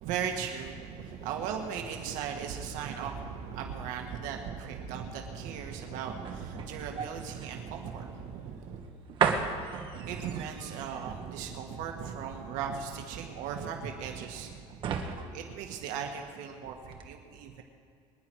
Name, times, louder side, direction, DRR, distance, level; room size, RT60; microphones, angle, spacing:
voice 1, 0.0-8.8 9.9-17.6, right 7 dB, 80° right, 2 dB, 1.8 m, -37 dB
sound 1, 2.5-16.5 16.8-17.0, right 6 dB, 40° right, 1.2 m, -37 dB
24.0 x 10.5 x 4.8 m, 2.3 s
cardioid pair, 170°, 13 cm